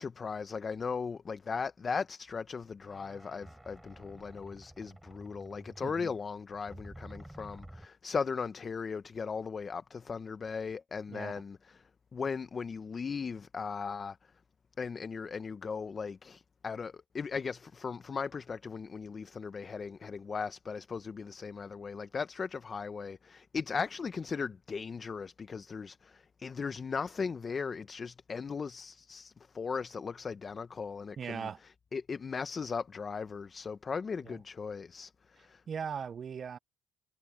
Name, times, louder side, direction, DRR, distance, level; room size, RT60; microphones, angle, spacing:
voice 1, 0.0-14.2 14.8-31.5 31.9-35.6, left 5 dB, 30° left, 0.8 m, -38 dB
sound 1, 2.3-2.4 2.8-7.9, right 1 dB, 5° right, 4.6 m, -51 dB
voice 2, 5.8-6.1 11.1-11.3 31.2-31.6 34.3-34.4 35.7-36.6, right 7 dB, 40° right, 0.4 m, -39 dB
cardioid pair, 105°, 0 cm